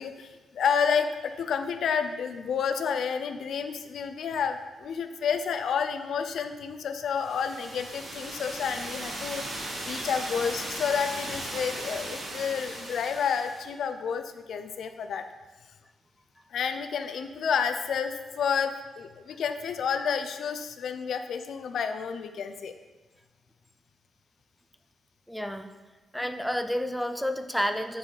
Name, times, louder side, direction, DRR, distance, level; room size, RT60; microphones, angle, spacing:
voice 1, 0.0-15.3 16.5-22.7, left 6 dB, 70° left, 8 dB, 0.4 m, -30 dB
sound 1, 7.2-13.7, right 1 dB, 50° right, 2.0 m, -37 dB
voice 2, 25.3-25.7 26.1-28.0, equal, ahead, 7 dB, 0.3 m, -30 dB
9.4 x 4.1 x 3.2 m, 1.2 s
cardioid pair, 135°, 0 cm